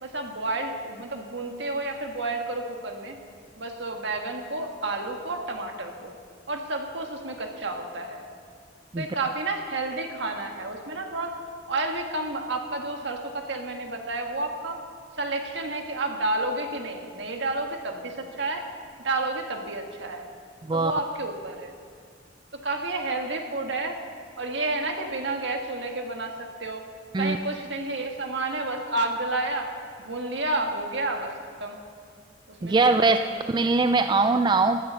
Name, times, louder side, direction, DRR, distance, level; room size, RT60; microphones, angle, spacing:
voice 1, 0.0-3.2 3.6-6.1 6.5-8.3 9.0-11.4 11.7-14.8 15.2-18.7 19.0-20.3 20.7-21.7 22.6-24.0 24.4-26.8 27.2-29.7 30.0-31.8 32.5-32.7 33.0-33.4, right 2 dB, 70° right, 3 dB, 1.6 m, -30 dB
voice 2, 32.6-33.2 33.5-34.8, right 3 dB, 25° right, 8 dB, 0.3 m, -21 dB
15.0 x 9.8 x 6.9 m, 2.2 s
head